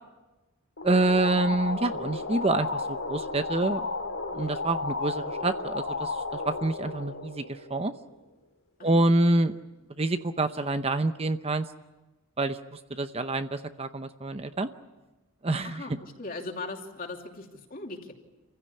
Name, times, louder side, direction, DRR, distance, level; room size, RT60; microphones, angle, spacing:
sound 1, 0.8-8.1, left 3 dB, 85° left, 2.8 m, -33 dB
voice 1, 0.8-3.9 4.3-7.9 8.8-9.6 10.0-11.7 12.4-14.7 15.4-15.8, right 2 dB, 30° right, 9 dB, 0.8 m, -27 dB
voice 2, 15.6-18.1, left 3 dB, 45° left, 2 dB, 3.0 m, -39 dB
27.5 x 15.5 x 9.8 m, 1.1 s
head